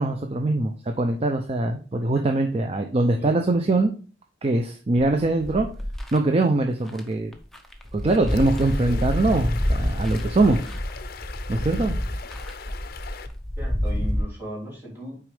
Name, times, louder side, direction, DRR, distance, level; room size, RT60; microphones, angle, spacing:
voice 1, 0.0-3.9 4.4-5.7 6.1-7.3 7.9-10.6 11.5-11.9, right 2 dB, 35° right, 5 dB, 0.5 m, -22 dB
sound 1, 5.0-6.2 6.9-7.0 7.3-14.2, equal, ahead, 0.8 m, -28 dB
sound 2, 8.3-13.3, left 6 dB, 60° left, 0.6 m, -41 dB
voice 2, 13.6-15.2, equal, 15° right, -6 dB, 3.0 m, -37 dB
6.1 x 4.7 x 3.4 m, 0.38 s
head